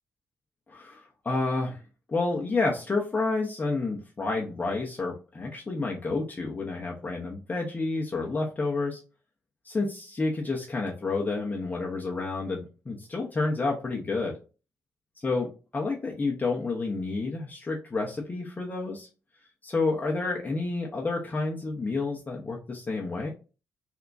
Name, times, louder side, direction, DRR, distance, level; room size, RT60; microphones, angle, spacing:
voice 1, 0.7-1.8 2.1-9.0 9.6-14.4 15.2-19.1 19.6-23.3, left 3 dB, 30° left, -2 dB, 0.9 m, -30 dB
3.5 x 2.8 x 2.5 m, 0.32 s
supercardioid pair, 65°, 6 cm